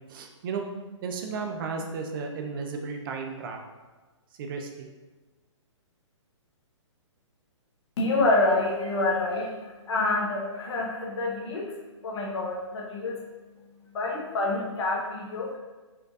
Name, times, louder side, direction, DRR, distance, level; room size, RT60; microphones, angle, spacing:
voice 1, 0.1-0.6 1.0-3.6 4.4-4.9, right 5 dB, 45° right, 3 dB, 0.5 m, -34 dB
voice 2, 8.0-11.7 12.0-13.2 13.9-15.6, left 2 dB, 65° left, -3 dB, 1.0 m, -27 dB
4.4 x 2.5 x 2.4 m, 1.3 s
hypercardioid pair, 145°, 16 cm